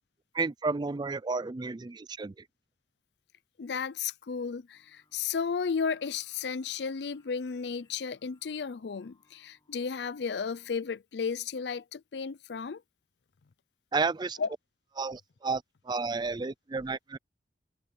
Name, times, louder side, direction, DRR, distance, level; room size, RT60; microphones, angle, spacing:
voice 1, 0.3-2.4 13.9-14.4 15.0-17.2, right 4 dB, 25° right, 0.4 m, -32 dB
voice 2, 3.6-12.8 14.4-14.5, left 6 dB, 70° left, 0.5 m, -33 dB
Singing, 4.7-10.8, left 2 dB, 25° left, 6.3 m, -70 dB
open air
head